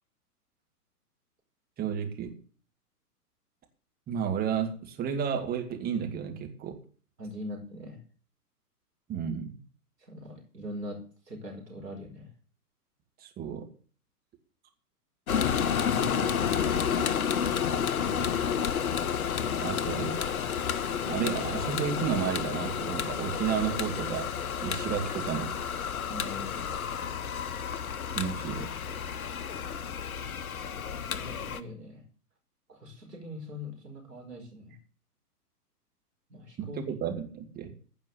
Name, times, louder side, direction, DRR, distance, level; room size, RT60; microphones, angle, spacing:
voice 1, 1.8-2.3 4.1-6.8 9.1-9.6 13.2-13.7 19.6-20.1 21.1-24.3 24.6-25.5 28.2-28.7 36.6-37.7, right 7 dB, 20° right, 4 dB, 2.3 m, -32 dB
voice 2, 7.2-8.0 10.1-11.0 11.3-12.3 19.4-19.7 26.1-26.7 31.0-32.0 32.7-34.7 36.3-36.8, left 1 dB, 85° right, 1 dB, 5.0 m, -42 dB
sound 1, 15.3-31.6, left 7 dB, 65° left, 1.1 m, -30 dB
15.5 x 5.4 x 8.1 m, 0.42 s
figure-of-eight pair, 115°, 47 cm